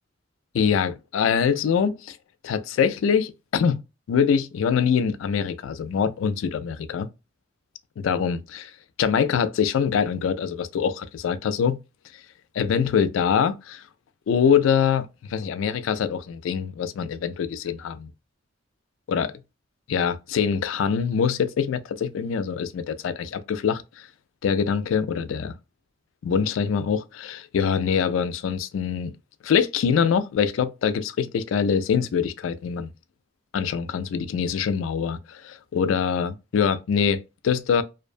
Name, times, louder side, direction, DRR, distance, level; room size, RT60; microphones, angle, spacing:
voice 1, 0.5-2.2 2.4-3.8 4.1-7.1 8.0-8.7 9.0-11.8 12.5-13.8 14.3-18.1 19.1-19.3 19.9-24.1 24.4-25.5 26.2-29.1 29.4-32.9 33.5-37.8, left 7 dB, 80° left, 0.3 m, -24 dB
2.5 x 2.1 x 2.4 m
head